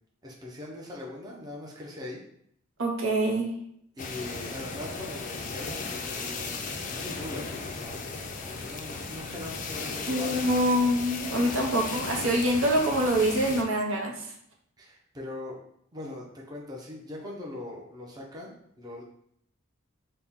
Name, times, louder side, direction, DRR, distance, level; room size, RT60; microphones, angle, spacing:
voice 1, 0.2-2.2 4.0-8.2 8.4-10.4 14.8-15.6 15.9-19.0, left 1 dB, 20° right, -2 dB, 0.6 m, -41 dB
voice 2, 2.8-3.5 10.1-14.3, right 1 dB, 75° right, 1 dB, 0.7 m, -25 dB
sound 1, 4.0-13.6, left 4 dB, 40° left, 0.4 m, -36 dB
4.3 x 2.1 x 3.5 m, 0.70 s
head